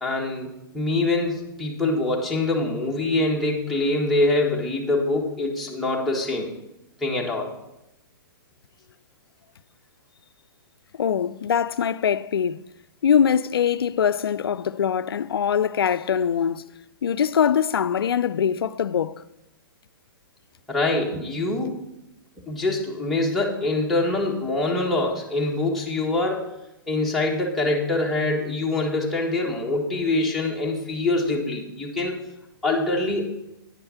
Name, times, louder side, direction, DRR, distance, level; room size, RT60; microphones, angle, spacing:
voice 1, 0.0-6.5 7.0-7.5 20.7-21.8 22.4-26.5 26.9-32.2 32.6-33.3, left 2 dB, ahead, 1.5 m, -24 dB
voice 2, 11.0-12.6 13.0-16.6 17.0-19.2, left 8 dB, 85° left, 0.4 m, -22 dB
9.4 x 5.4 x 5.7 m
hypercardioid pair, 125°, 12 cm